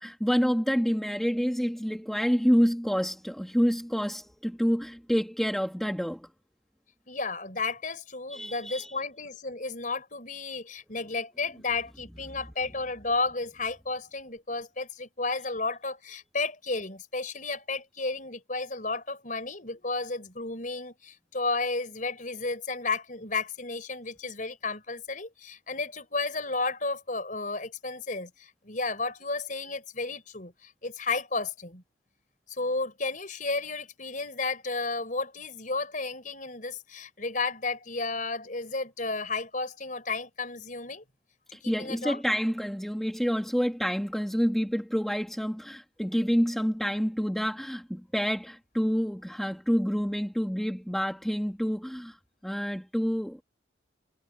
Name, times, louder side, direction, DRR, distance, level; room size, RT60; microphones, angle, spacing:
voice 1, 0.0-6.3 8.3-8.9 41.5-52.2 52.4-53.4, equal, ahead, 2.0 m, -28 dB
voice 2, 7.1-31.8 32.5-41.0 41.6-42.2, left 3 dB, 40° left, 5.1 m, -33 dB
head